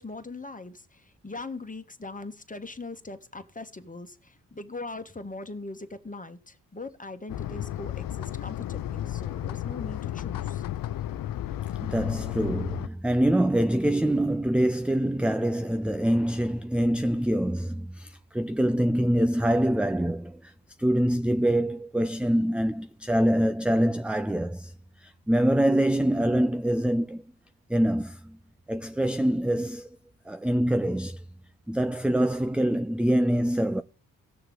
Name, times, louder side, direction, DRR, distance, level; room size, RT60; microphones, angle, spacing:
voice 1, 0.0-10.6, left 3 dB, 20° left, 1.8 m, -40 dB
sound 1, 7.3-12.9, left 12 dB, 55° left, 0.6 m, -33 dB
voice 2, 11.8-20.5 20.8-24.7 25.0-27.2 27.7-28.4 28.7-29.9 30.3-31.2 31.7-33.8, right 1 dB, 5° right, 0.7 m, -25 dB
17.0 x 6.6 x 3.8 m
hypercardioid pair, 45°, 40 cm